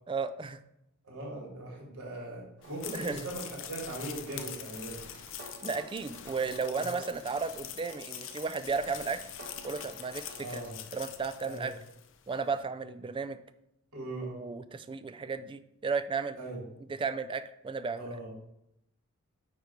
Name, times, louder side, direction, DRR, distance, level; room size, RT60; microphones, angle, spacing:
voice 1, 0.1-0.6 2.9-3.3 5.6-9.2 9.6-10.6 10.9-11.7 12.3-13.4 14.2-16.4 17.0-18.2, right 4 dB, 25° right, 12 dB, 0.3 m, -34 dB
voice 2, 1.0-5.0 6.7-7.0 10.4-10.8 11.4-11.7 13.9-14.4 16.4-16.6 18.0-18.3, right 2 dB, 75° right, -3 dB, 3.0 m, -40 dB
sound 1, 2.6-12.2, left 10 dB, 60° left, 0.6 m, -44 dB
sound 2, 2.6-10.7, right 2 dB, 60° right, 1.5 m, -53 dB
9.6 x 3.3 x 4.5 m, 0.82 s
head